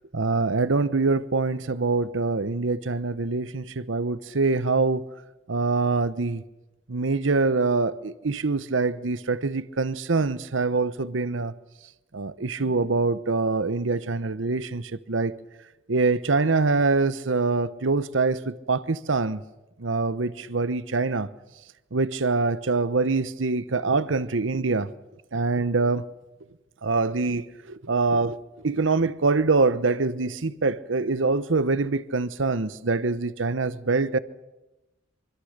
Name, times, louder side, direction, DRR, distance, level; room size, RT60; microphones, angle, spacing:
voice 1, 0.1-5.0 5.5-6.4 6.9-11.5 12.1-15.3 15.9-19.4 19.8-21.3 21.9-24.9 25.3-26.0 26.8-28.4 28.6-34.2, right 3 dB, 80° right, 0.9 m, -24 dB
25.0 x 25.0 x 6.6 m
head